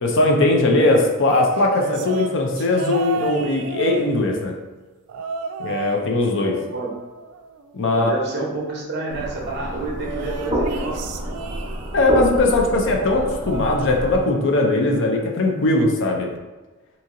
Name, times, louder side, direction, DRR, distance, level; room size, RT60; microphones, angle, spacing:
voice 1, 0.0-4.5 5.6-6.5 7.7-8.2 11.9-16.3, left 2 dB, 60° left, 1 dB, 0.5 m, -19 dB
sound 1, 1.2-4.5 5.1-6.1 6.4-7.9 10.0-12.1 13.0-14.5 14.8-15.2 16.3-16.4, right 6 dB, 85° right, 0.3 m, -33 dB
voice 2, 7.9-11.0, right 2 dB, 50° right, -2 dB, 0.9 m, -28 dB
sound 2, 9.1-14.2, right 1 dB, 20° right, 0.7 m, -28 dB
2.8 x 2.8 x 3.6 m, 1.2 s
head